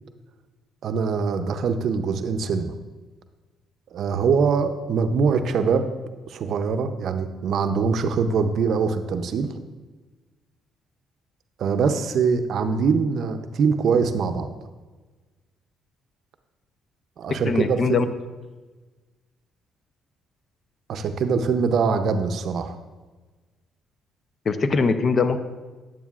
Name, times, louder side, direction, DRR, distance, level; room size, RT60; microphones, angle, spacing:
voice 1, 0.8-2.7 3.9-5.9 6.3-9.5 11.6-14.5 17.2-18.1 20.9-22.8, right 5 dB, 65° right, 8 dB, 0.6 m, -23 dB
voice 2, 17.3-18.1 24.5-25.4, left 4 dB, 45° left, 10 dB, 0.6 m, -22 dB
9.1 x 8.9 x 2.4 m, 1.3 s
supercardioid pair, 75°, 0 cm